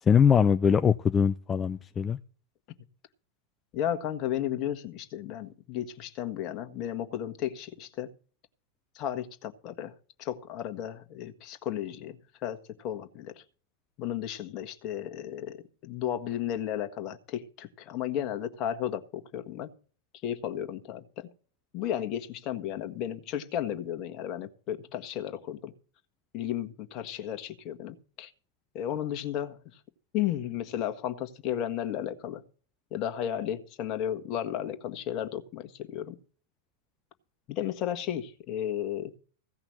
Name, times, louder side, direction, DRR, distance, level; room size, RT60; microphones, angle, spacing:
voice 1, 0.1-2.2, left 7 dB, 20° left, 0.5 m, -22 dB
voice 2, 3.7-8.1 8.9-9.9 10.2-13.4 14.0-15.6 15.8-19.7 20.2-21.3 21.7-25.7 26.3-28.3 28.7-29.8 30.1-32.4 32.9-36.2 37.5-39.1, left 10 dB, 35° left, 1.6 m, -34 dB
16.0 x 5.8 x 7.3 m
figure-of-eight pair, 90°, 0 cm